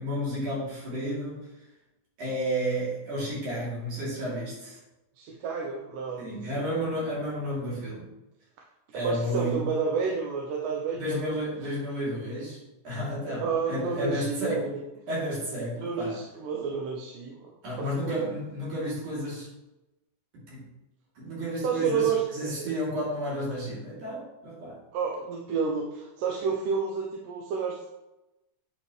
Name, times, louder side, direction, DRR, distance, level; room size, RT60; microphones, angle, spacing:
voice 1, 0.0-1.4 2.2-4.8 6.2-8.1 8.9-9.7 10.9-14.7 15.1-16.2 17.6-19.5 20.3-20.6 21.2-24.8, equal, 65° right, -7 dB, 4.7 m, -32 dB
voice 2, 5.2-6.3 6.6-6.8 8.9-11.4 13.4-14.8 15.8-17.5 17.9-18.2 21.6-22.7 24.9-27.9, right 5 dB, 85° right, -1 dB, 2.5 m, -30 dB
8.7 x 6.2 x 3.3 m, 0.97 s
omnidirectional pair, 3.8 m